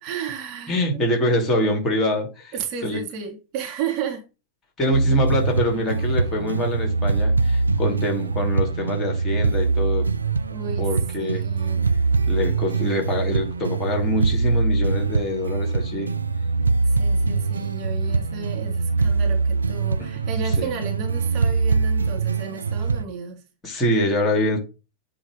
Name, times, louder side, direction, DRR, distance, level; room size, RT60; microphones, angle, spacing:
voice 1, 0.0-1.2 2.5-4.2 10.5-10.9 11.2-11.9 16.8-23.4, right 6 dB, 40° right, 1.7 m, -33 dB
voice 2, 0.7-2.5 2.8-3.0 4.8-10.1 10.8-11.4 12.3-16.1 20.0-20.1 20.6-20.7 23.6-24.6, left 1 dB, 25° left, 2.7 m, -24 dB
sound 1, 4.9-23.0, right 4 dB, 75° right, 0.5 m, -23 dB
8.4 x 3.1 x 5.1 m
figure-of-eight pair, 90°, 0 cm